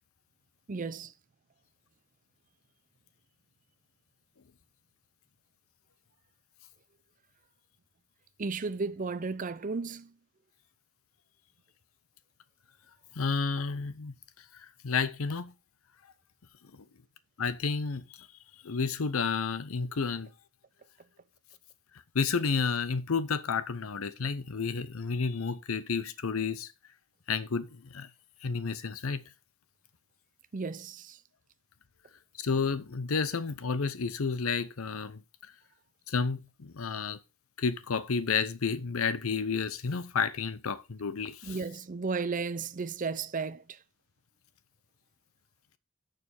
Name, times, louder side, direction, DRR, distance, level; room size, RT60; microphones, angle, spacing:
voice 1, 0.7-1.1 8.4-10.1 30.5-31.2 41.4-43.8, right 4 dB, 40° right, 0.5 m, -34 dB
voice 2, 13.2-14.2 14.5-15.5 16.7-16.8 17.4-18.3 18.6-20.3 22.1-26.7 27.3-28.1 28.4-29.2 32.4-35.2 36.1-37.2 37.6-41.6, left 5 dB, 90° left, 0.7 m, -31 dB
6.6 x 6.6 x 5.3 m
head